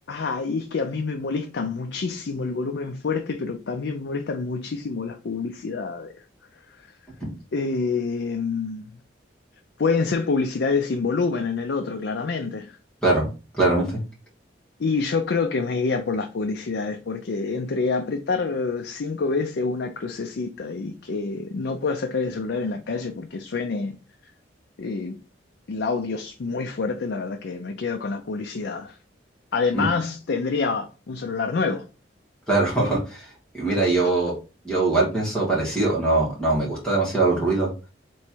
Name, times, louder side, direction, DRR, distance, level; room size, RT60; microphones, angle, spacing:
voice 1, 0.1-6.2 6.7-6.8 7.5-8.8 9.8-12.8 14.8-24.0 24.8-25.2 25.7-29.0 29.5-31.9, left 4 dB, 65° left, 0.4 m, -27 dB
voice 2, 13.5-13.9 29.7-29.9 32.5-33.3 33.5-34.3 34.6-37.7, right 2 dB, 5° left, 1.9 m, -22 dB
3.4 x 3.1 x 4.4 m
head